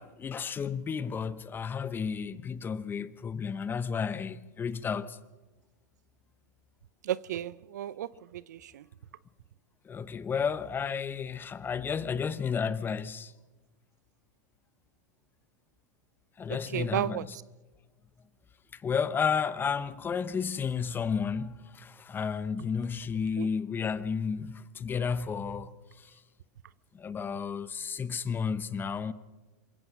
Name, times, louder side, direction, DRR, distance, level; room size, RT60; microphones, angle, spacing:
voice 1, 0.0-5.2 9.8-13.3 16.4-17.3 18.7-25.7 26.0-26.1 26.9-29.1, left 6 dB, 20° left, 0.9 m, -32 dB
voice 2, 7.0-8.8 16.5-17.3 23.4-23.5, right 12 dB, 75° right, 0.6 m, -34 dB
27.0 x 16.0 x 6.1 m
hypercardioid pair, 100°, 9 cm